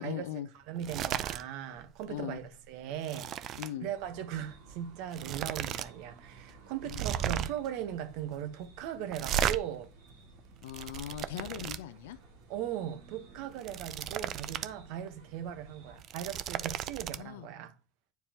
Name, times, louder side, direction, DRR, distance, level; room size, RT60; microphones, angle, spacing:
voice 1, 0.0-0.5 2.0-2.4 3.6-3.9 6.8-7.0 10.6-12.2 17.2-17.5, left 11 dB, 85° left, 0.5 m, -39 dB
voice 2, 0.7-9.9 11.4-11.7 12.5-17.7, right 10 dB, 70° right, 1.1 m, -39 dB
sound 1, 0.8-1.4 1.8-2.0 2.4-3.7 4.7-4.8 5.1-5.9 6.2-6.3 6.8-7.7 9.1-9.6 10.4-11.8 13.4-14.7 15.1-15.2 15.9-17.2, right 10 dB, 50° right, 0.5 m, -35 dB
sound 2, 3.9-16.0, right 3 dB, 85° right, 2.3 m, -55 dB
9.4 x 4.7 x 2.9 m
supercardioid pair, 105°, 0 cm